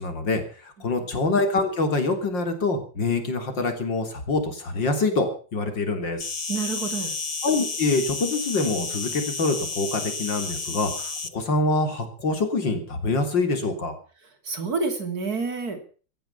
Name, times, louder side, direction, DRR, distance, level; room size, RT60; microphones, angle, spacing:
voice 1, 0.0-6.2 7.4-14.0, left 3 dB, 75° left, 6 dB, 4.1 m, -25 dB
Insect, 6.2-11.3, left 4 dB, 25° left, 0.9 m, -31 dB
voice 2, 6.5-7.1 14.4-15.8, right 4 dB, 55° right, 7 dB, 3.2 m, -28 dB
17.0 x 14.0 x 5.7 m, 0.40 s
omnidirectional pair, 2.0 m